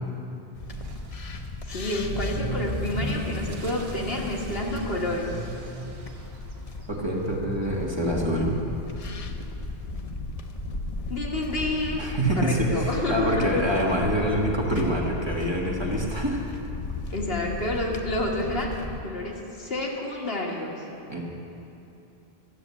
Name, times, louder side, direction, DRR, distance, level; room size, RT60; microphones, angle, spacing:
sound 1, 0.5-19.0, left 2 dB, 40° left, 0.6 m, -36 dB
Motor vehicle (road) / Accelerating revving vroom, 0.7-15.6 15.9-16.2 16.8-16.9 17.2-17.3 17.5-17.6 18.9-19.0, right 1 dB, 70° right, 1.3 m, -38 dB
voice 1, 1.7-5.3 11.1-12.1 12.4-13.6 17.1-18.7 19.0-20.8, left 2 dB, 70° left, -2 dB, 1.8 m, -29 dB
voice 2, 6.9-8.6 12.0-16.4 21.1-21.2, equal, 25° right, -2 dB, 1.5 m, -26 dB
12.5 x 7.1 x 8.3 m, 2.8 s
omnidirectional pair, 1.0 m